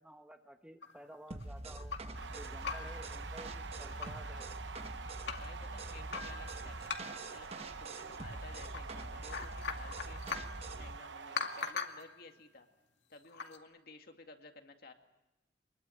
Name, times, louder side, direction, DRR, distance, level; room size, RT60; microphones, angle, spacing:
voice 1, 0.0-1.9 2.3-4.5, equal, 5° right, 7 dB, 1.0 m, -53 dB
sound 1, 0.8-2.2 2.6-3.1 3.5-3.6 3.8-4.3 4.8-5.5 6.1-7.3 8.3-8.8 9.1-10.6 11.4-12.1 13.2-13.6, left 5 dB, 90° left, 2.1 m, -41 dB
sound 2, 1.3-11.0, right 2 dB, 35° right, 1.1 m, -45 dB
sound 3, 2.1-11.7, right 5 dB, 85° right, 0.9 m, -47 dB
voice 2, 5.4-6.9 7.3-10.3 10.7-12.7 13.1-14.9, left 3 dB, 60° left, 5 dB, 2.2 m, -55 dB
24.5 x 21.5 x 9.1 m, 0.97 s
head